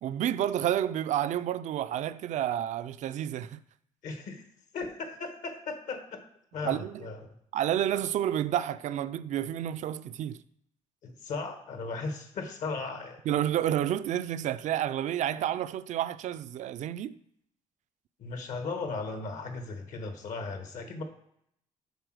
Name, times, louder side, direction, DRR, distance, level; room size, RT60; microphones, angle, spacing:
voice 1, 0.0-3.6 6.6-7.0 7.5-10.4 13.3-17.1, right 11 dB, 60° right, 0.4 m, -30 dB
voice 2, 4.0-4.4 4.7-6.2 6.5-7.3 11.0-13.2 18.2-21.0, left 3 dB, 70° left, 1.4 m, -36 dB
8.1 x 4.3 x 6.3 m
cardioid pair, 115°, 14 cm